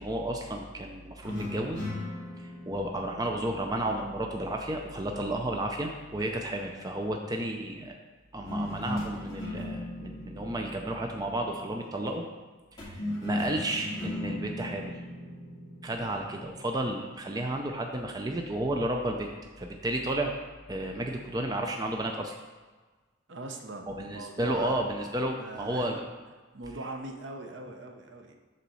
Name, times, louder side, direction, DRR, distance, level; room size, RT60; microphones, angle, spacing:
voice 1, 0.0-1.8 2.4-7.9 8.3-12.3 12.7-15.0 15.8-19.3 19.6-20.3 20.7-22.4 24.0-26.0, right 1 dB, 20° right, 2 dB, 0.5 m, -32 dB
sound 1, 1.2-4.6 8.4-11.9 12.8-16.6, left 1 dB, 20° left, 2.5 m, -37 dB
voice 2, 23.3-24.8 25.4-26.0 26.5-28.3, right 2 dB, 65° right, 4 dB, 0.7 m, -41 dB
6.9 x 4.2 x 6.2 m, 1.3 s
head